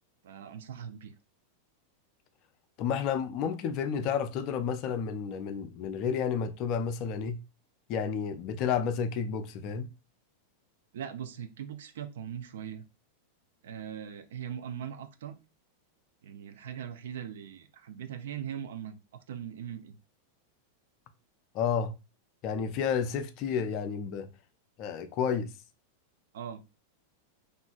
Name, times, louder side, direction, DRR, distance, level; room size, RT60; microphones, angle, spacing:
voice 1, 0.2-1.1 10.9-12.8 13.6-15.4 16.2-19.0 19.3-20.0 26.3-26.6, right 9 dB, 60° right, 0.3 m, -40 dB
voice 2, 2.8-7.4 7.9-9.9 21.5-21.9 22.4-24.3 24.8-25.5, left 7 dB, 40° left, 0.3 m, -31 dB
2.8 x 2.4 x 2.2 m
figure-of-eight pair, 90°, 0 cm